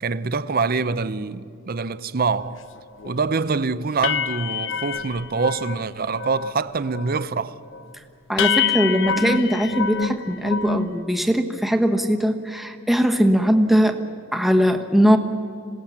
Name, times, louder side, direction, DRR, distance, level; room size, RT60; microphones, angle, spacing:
voice 1, 0.0-2.6 3.0-7.6, right 4 dB, 45° right, 0.7 m, -25 dB
sound 1, 2.5-2.6 3.0-3.2 3.5-3.6 4.0-5.8 6.1-6.6 6.9-7.3 7.7-7.8 8.4-10.9, left 6 dB, 65° left, 0.7 m, -26 dB
voice 2, 8.3-14.0 14.3-15.2, equal, ahead, 1.2 m, -20 dB
27.0 x 18.0 x 7.3 m
head